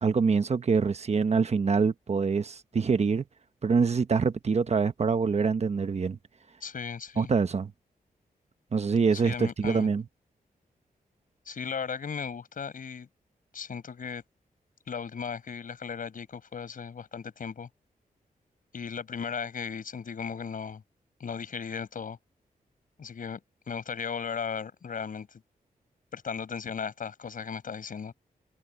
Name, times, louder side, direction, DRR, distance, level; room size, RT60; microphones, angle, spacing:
voice 1, 0.0-3.2 3.6-6.2 7.2-7.7 8.7-10.0, right 5 dB, 45° right, 1.1 m, -25 dB
voice 2, 6.6-7.3 9.1-9.9 11.5-13.1 13.5-14.2 14.9-17.7 18.7-20.8 21.2-22.2 23.0-23.4 23.7-25.3 26.1-28.1, left 6 dB, 65° left, 5.7 m, -36 dB
wide cardioid pair, 100°, 15 cm